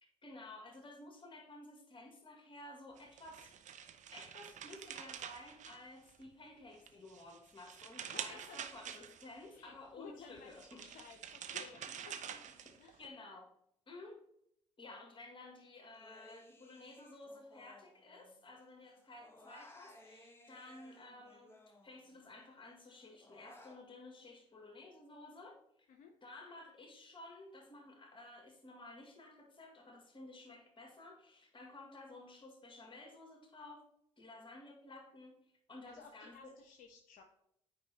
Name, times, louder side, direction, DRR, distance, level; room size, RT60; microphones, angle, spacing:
voice 1, 0.0-3.5 4.1-10.8 11.8-12.4 13.0-13.5 13.9-14.2 14.8-25.9 26.2-33.9 34.2-35.4 35.7-36.5, left 2 dB, 35° left, 2 dB, 1.9 m, -54 dB
sound 1, 3.0-6.3 6.7-9.5 10.4-13.1, right 8 dB, 50° right, 0.6 m, -47 dB
voice 2, 8.0-8.6 9.5-12.5 12.8-13.1 25.9-26.1 35.9-37.2, left 6 dB, 65° left, 3 dB, 0.7 m, -56 dB
Human voice, 15.9-18.6 18.8-22.3 22.7-23.8, left 1 dB, 15° left, 1.3 m, -60 dB
8.7 x 4.9 x 2.9 m, 0.76 s
hypercardioid pair, 45°, 16 cm